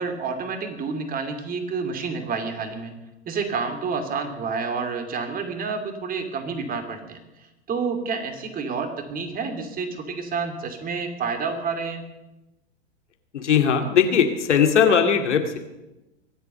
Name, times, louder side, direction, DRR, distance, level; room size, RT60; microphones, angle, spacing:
voice 1, 0.0-2.9 3.3-7.2 7.7-12.0, right 5 dB, 25° right, 7 dB, 2.7 m, -29 dB
voice 2, 13.3-15.6, left 7 dB, 75° left, 6 dB, 2.3 m, -19 dB
23.0 x 8.4 x 6.9 m, 0.97 s
hypercardioid pair, 105°, 35 cm